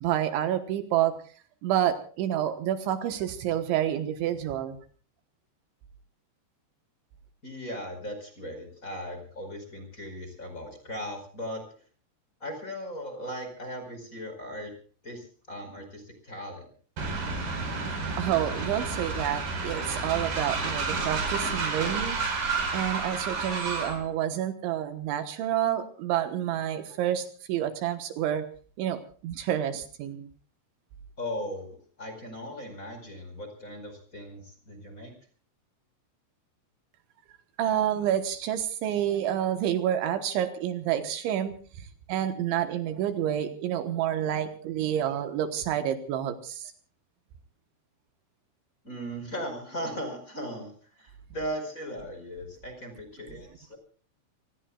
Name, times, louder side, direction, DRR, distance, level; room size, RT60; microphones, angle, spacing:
voice 1, 0.0-1.2 1.6-4.8 18.0-22.2 22.7-28.5 28.8-30.3 37.6-46.7, right 11 dB, 75° right, 9 dB, 3.6 m, -29 dB
voice 2, 7.4-11.6 12.4-14.7 15.0-16.7 31.2-35.1 48.8-53.8, equal, 15° left, 6 dB, 4.8 m, -38 dB
Train, 17.0-24.0, right 4 dB, 50° right, 6.6 m, -30 dB
28.5 x 19.0 x 2.4 m, 0.41 s
omnidirectional pair, 5.6 m